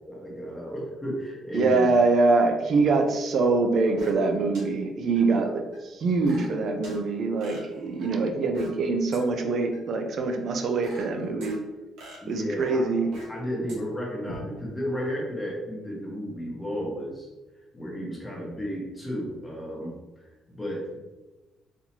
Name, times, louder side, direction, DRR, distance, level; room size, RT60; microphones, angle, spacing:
voice 1, 0.1-1.9 6.6-6.8 12.2-12.9 13.3-17.3 17.7-21.0, equal, 15° left, -3 dB, 0.9 m, -33 dB
voice 2, 1.5-11.6 12.3-13.1, right 3 dB, 50° right, 5 dB, 0.5 m, -24 dB
sound 1, 3.8-4.3 4.5-4.6 5.1-5.2 5.7-7.0 7.4-8.8 9.1-9.2 9.7-9.8 10.3-11.5 12.0-13.4 13.7-13.8 14.3-14.4, right 1 dB, 90° right, 1.3 m, -45 dB
4.2 x 2.7 x 2.9 m, 1.1 s
cardioid pair, 115°, 0 cm